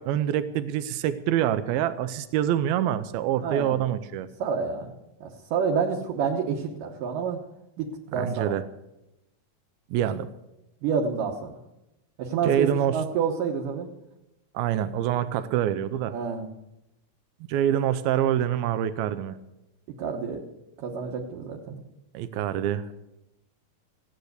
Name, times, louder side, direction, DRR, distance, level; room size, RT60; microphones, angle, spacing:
voice 1, 0.0-4.3 8.1-8.6 9.9-10.3 12.4-13.0 14.5-16.1 17.5-19.4 22.1-22.9, right 10 dB, 90° right, 12 dB, 2.6 m, -26 dB
voice 2, 3.4-3.8 4.4-7.4 7.8-8.6 10.8-11.6 12.2-13.9 16.1-16.5 20.0-20.4 20.8-21.8, right 6 dB, 70° right, 0 dB, 2.7 m, -29 dB
16.0 x 10.0 x 8.1 m, 0.90 s
omnidirectional pair, 4.2 m